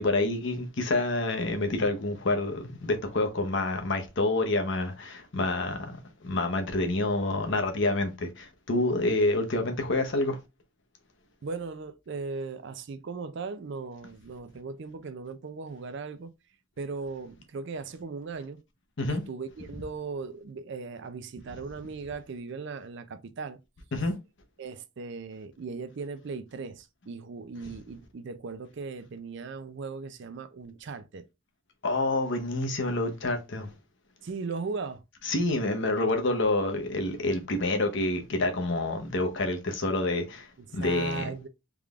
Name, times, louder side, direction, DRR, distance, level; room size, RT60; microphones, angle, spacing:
voice 1, 0.0-10.4 19.0-19.2 23.9-24.2 31.8-33.7 35.2-41.3, left 2 dB, 60° left, 0.8 m, -28 dB
voice 2, 11.4-16.3 16.8-18.6 19.1-23.6 24.6-31.3 34.2-35.0 40.8-41.5, right 4 dB, 55° right, 0.4 m, -38 dB
3.6 x 3.3 x 2.3 m
head